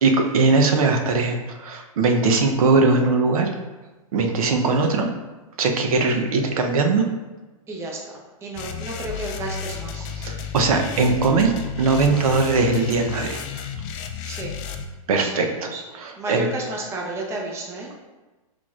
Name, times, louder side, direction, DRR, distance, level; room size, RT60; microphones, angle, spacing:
voice 1, 0.0-3.5 4.1-5.1 5.6-7.0 10.2-13.4 15.1-15.7 16.0-16.5, right 3 dB, 75° right, 4 dB, 0.7 m, -20 dB
voice 2, 7.7-8.1 8.4-10.5 14.2-14.5 15.1-15.8 16.2-17.9, right 2 dB, 15° right, -1 dB, 0.6 m, -32 dB
sound 1, 8.6-14.9, left 6 dB, 30° left, 0.4 m, -32 dB
6.0 x 3.1 x 2.4 m, 1.2 s
hypercardioid pair, 145°, 18 cm